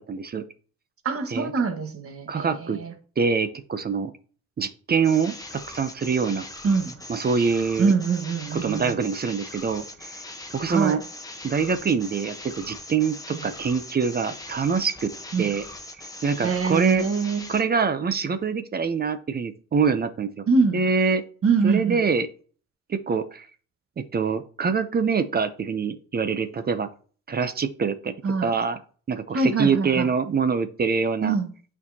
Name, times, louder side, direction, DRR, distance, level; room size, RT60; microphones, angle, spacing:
voice 1, 0.1-0.4 1.3-1.5 2.3-2.8 3.2-4.1 4.6-5.3 5.7-6.5 7.1-7.9 8.5-10.1 10.5-11.0 11.4-15.1 15.4-15.6 16.2-17.1 17.5-20.4 20.7-21.2 21.6-22.3 22.9-23.5 24.0-26.9 27.3-28.1 28.4-28.8 29.1-31.3, right 5 dB, 30° right, 11 dB, 0.6 m, -24 dB
voice 2, 1.0-2.9 6.6-6.9 7.8-9.0 10.7-11.0 13.3-13.5 15.3-15.5 16.4-17.4 20.5-20.8 21.4-22.0 28.2-28.5 29.3-30.1 31.2-31.5, right 4 dB, 50° right, 6 dB, 1.4 m, -24 dB
sound 1, 5.0-17.6, left 2 dB, 10° left, 1.0 m, -40 dB
8.3 x 4.6 x 2.8 m, 0.41 s
cardioid pair, 90°, 30 cm